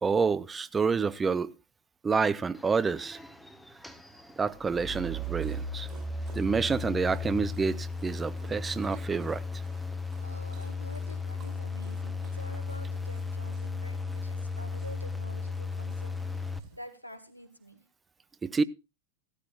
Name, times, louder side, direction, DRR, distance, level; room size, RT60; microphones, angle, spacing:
voice 1, 0.0-1.5 2.0-3.2 4.4-5.9 6.3-9.4 18.4-18.6, right 5 dB, 15° right, 0.5 m, -28 dB
sound 1, 2.5-16.6, left 3 dB, ahead, 1.1 m, -36 dB
Dog, 5.2-16.8, right 8 dB, 40° right, 4.0 m, -58 dB
voice 2, 10.2-17.8, equal, 90° left, 1.8 m, -48 dB
16.5 x 13.0 x 2.3 m
figure-of-eight pair, 90°, 0 cm